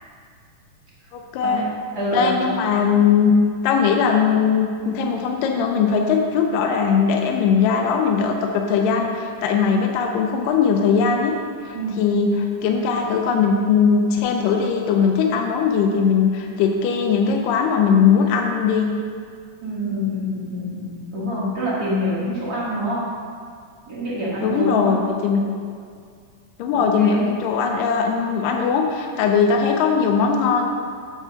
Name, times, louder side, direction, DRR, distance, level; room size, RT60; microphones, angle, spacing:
voice 1, 1.1-1.7 2.1-3.3 3.6-11.3 12.0-18.9 24.4-25.4 26.6-30.7, left 6 dB, 80° left, 2 dB, 2.3 m, -19 dB
voice 2, 1.9-2.6 11.7-12.0 19.6-23.0 23.9-24.9 25.4-25.5 26.7-27.3, equal, 45° right, -8 dB, 1.3 m, -26 dB
8.2 x 4.6 x 5.7 m, 2.1 s
omnidirectional pair, 3.9 m